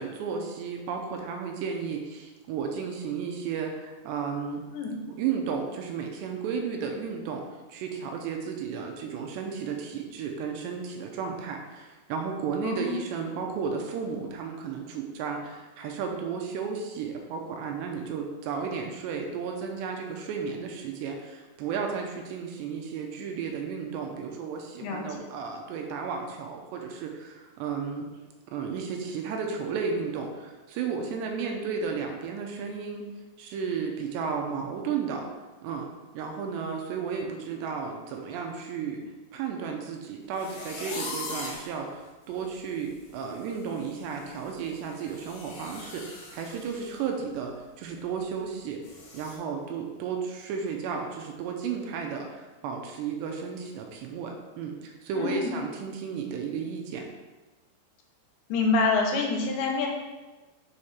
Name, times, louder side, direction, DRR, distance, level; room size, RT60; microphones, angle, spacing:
voice 1, 0.0-4.7 5.2-28.1 28.5-33.1 33.4-35.3 35.6-35.9 36.1-39.0 39.3-48.8 49.1-57.1, right 6 dB, 85° right, 2 dB, 2.9 m, -33 dB
voice 2, 12.6-12.9 24.8-25.1 55.2-55.5 58.5-59.9, left 4 dB, 85° left, 0 dB, 3.3 m, -26 dB
sound 1, 40.3-41.7 42.3-42.4 42.8-43.0 43.3-47.0 47.3-47.5 47.9-48.0 48.8-49.4, left 2 dB, 65° left, 1.9 m, -41 dB
7.1 x 5.0 x 4.3 m, 1.2 s
omnidirectional pair, 5.1 m